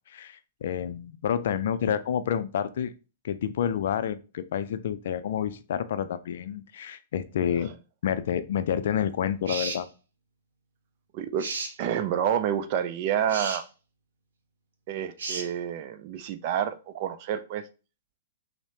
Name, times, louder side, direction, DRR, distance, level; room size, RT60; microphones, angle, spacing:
voice 1, 0.1-2.9 3.2-7.7 8.0-9.9, left 9 dB, 55° left, 12 dB, 0.4 m, -29 dB
sound 1, 9.4-9.8 11.4-11.7 13.3-13.6 15.2-15.5, right 4 dB, 65° right, 0.8 m, -33 dB
voice 2, 11.1-11.5 11.8-13.6 14.9-17.6, right 9 dB, 45° right, 10 dB, 0.5 m, -28 dB
5.4 x 2.1 x 2.8 m, 0.34 s
figure-of-eight pair, 110°, 0 cm